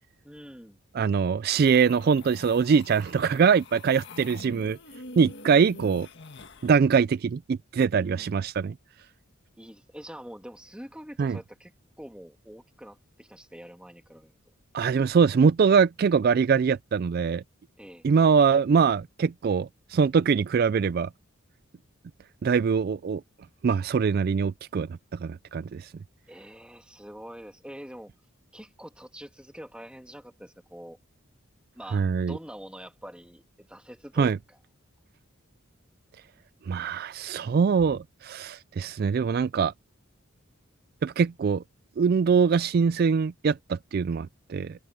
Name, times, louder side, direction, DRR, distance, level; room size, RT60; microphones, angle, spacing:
voice 1, 0.2-0.8 8.0-8.3 9.6-11.7 12.0-14.4 17.8-18.1 26.3-28.1 28.5-31.0 31.8-34.6, equal, 5° right, 2.1 m, -45 dB
voice 2, 0.9-4.8 5.2-6.1 6.6-8.7 11.2-11.4 14.7-17.4 18.0-21.1 22.4-23.2 23.6-24.9 25.2-25.9 31.9-32.4 34.2-34.4 36.7-39.7 41.0-41.6 42.0-44.7, right 6 dB, 45° right, 0.3 m, -23 dB
sound 1, 1.5-6.8, left 3 dB, 55° left, 1.8 m, -46 dB
head